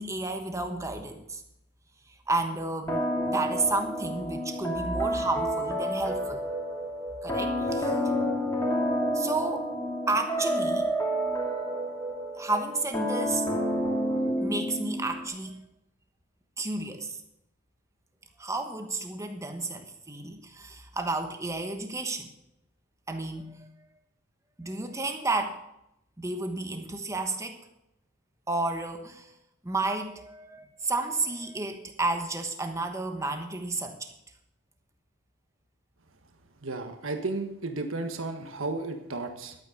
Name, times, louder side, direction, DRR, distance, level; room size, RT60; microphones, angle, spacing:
voice 1, 0.0-1.4 2.3-6.4 7.2-8.0 9.1-9.7 10.1-10.9 12.3-13.4 14.4-15.6 16.6-17.2 18.4-22.3 23.1-23.7 24.6-25.6 26.2-27.6 28.5-29.3 29.6-34.1, right 2 dB, 15° right, 6 dB, 1.2 m, -31 dB
sound 1, 2.9-15.3, equal, 15° left, 2.7 m, -29 dB
voice 2, 36.6-39.6, right 3 dB, 65° right, 5 dB, 1.4 m, -33 dB
12.0 x 8.8 x 6.5 m, 0.83 s
head